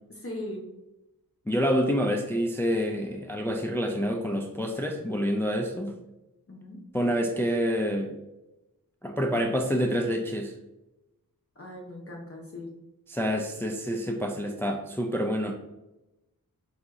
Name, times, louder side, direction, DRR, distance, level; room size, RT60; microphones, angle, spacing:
voice 1, 0.1-0.6 6.5-6.8 11.6-12.7, left 1 dB, 40° left, -1 dB, 0.8 m, -39 dB
voice 2, 1.5-5.9 6.9-8.2 9.0-10.5 13.1-15.5, equal, 5° left, 1 dB, 0.4 m, -27 dB
4.9 x 2.7 x 3.5 m, 0.97 s
wide cardioid pair, 90°, 36 cm